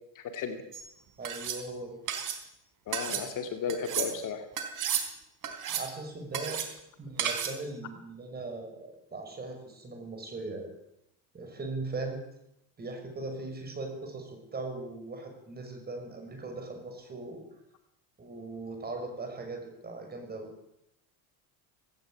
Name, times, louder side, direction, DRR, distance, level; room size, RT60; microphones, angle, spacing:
voice 1, 0.2-0.6 2.9-4.4, left 6 dB, 40° left, 6 dB, 2.5 m, -34 dB
sound 1, 0.7-0.9 1.2-1.6 2.1-2.4 2.9-3.3 3.7-4.1 4.6-5.1 5.4-5.9 6.3-6.7 7.2-7.6, right 8 dB, 40° right, 3.7 m, -32 dB
voice 2, 1.2-2.0 5.7-6.6 7.0-10.7 11.3-12.2 12.8-17.4 18.2-20.5, right 3 dB, 20° right, 4 dB, 6.2 m, -39 dB
18.5 x 17.5 x 8.8 m, 0.81 s
cardioid pair, 145°, 46 cm